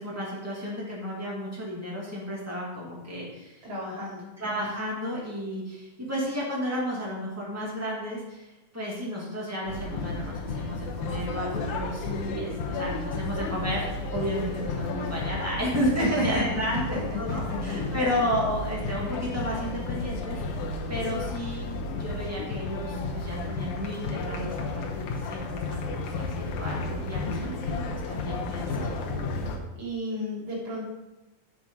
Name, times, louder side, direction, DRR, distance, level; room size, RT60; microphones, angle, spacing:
voice 1, 0.0-3.6 4.4-20.4 20.9-28.9, equal, 10° right, -5 dB, 0.8 m, -32 dB
voice 2, 3.6-4.3 16.0-16.4 17.5-18.1 27.2-27.5 29.8-30.9, equal, 40° right, -6 dB, 3.9 m, -33 dB
sound 1, 9.7-29.6, left 3 dB, 85° left, 2.8 m, -32 dB
7.2 x 6.1 x 5.2 m, 1.0 s
omnidirectional pair, 4.0 m